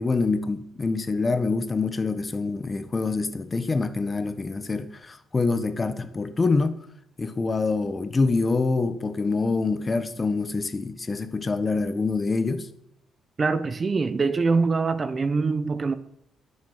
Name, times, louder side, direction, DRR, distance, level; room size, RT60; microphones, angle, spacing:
voice 1, 0.0-6.8 7.2-12.7, left 3 dB, 30° left, 1.3 m, -25 dB
voice 2, 13.4-15.9, right 4 dB, 35° right, 1.0 m, -24 dB
20.0 x 7.1 x 6.7 m
cardioid pair, 90°, 0 cm